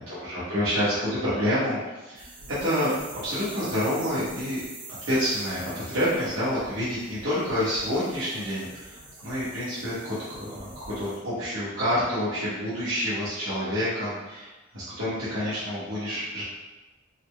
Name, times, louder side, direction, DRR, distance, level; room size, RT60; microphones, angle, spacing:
voice 1, 0.0-2.9 3.2-4.6 5.1-16.4, equal, 70° right, -11 dB, 1.1 m, -28 dB
sound 1, 2.1-11.2, right 2 dB, 50° right, 1.0 m, -45 dB
4.1 x 2.0 x 3.3 m, 1.1 s
head